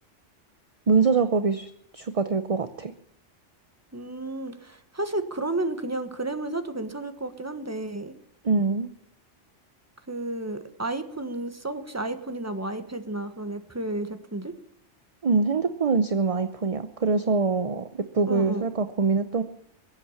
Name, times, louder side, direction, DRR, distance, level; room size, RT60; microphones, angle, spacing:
voice 1, 0.9-2.9 8.4-8.9 15.2-19.4, right 4 dB, 35° right, 10 dB, 0.7 m, -24 dB
voice 2, 3.9-8.1 10.1-14.5 18.2-18.7, right 2 dB, 15° right, 8 dB, 1.3 m, -32 dB
22.0 x 8.5 x 7.2 m, 0.71 s
omnidirectional pair, 1.2 m